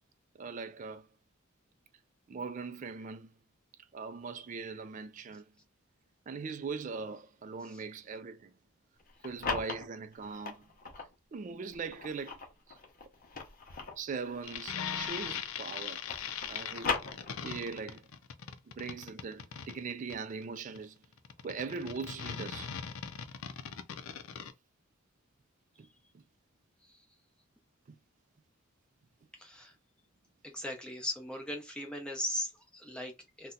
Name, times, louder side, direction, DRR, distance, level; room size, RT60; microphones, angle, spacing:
voice 1, 0.4-1.1 2.3-3.3 3.9-5.5 6.3-8.5 9.2-10.7 11.3-12.4 12.7-12.8 14.0-16.0 16.5-17.0 17.4-18.0 18.7-21.0 21.4-22.7 25.8-25.9 26.1-26.2 27.9-28.0, right 4 dB, 35° right, 0.3 m, -40 dB
sound 1, 9.0-11.1 11.7-15.5 15.7-17.7, left 5 dB, 45° left, 0.7 m, -39 dB
sound 2, 14.4-24.5, left 7 dB, 85° left, 0.5 m, -40 dB
voice 2, 29.3-29.8 30.4-33.5, left 1 dB, 5° left, 0.7 m, -39 dB
2.7 x 2.2 x 3.7 m
head